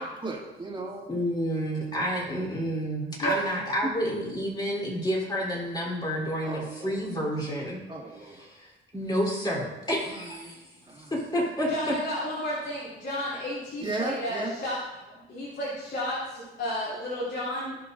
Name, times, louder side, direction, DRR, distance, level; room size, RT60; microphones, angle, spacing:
voice 1, 0.0-1.2 2.1-2.2 3.2-3.5 6.4-7.1 7.9-8.5 10.1-10.5 10.9-11.1 13.8-14.5, right 2 dB, 25° right, -2 dB, 2.3 m, -36 dB
voice 2, 1.1-7.9 8.2-10.6 11.1-11.9, equal, 20° left, -3 dB, 3.5 m, -30 dB
voice 3, 11.7-14.8 15.1-17.8, equal, 60° left, -9 dB, 3.2 m, -32 dB
17.0 x 5.9 x 2.6 m, 1.0 s
cardioid pair, 90°, 20 cm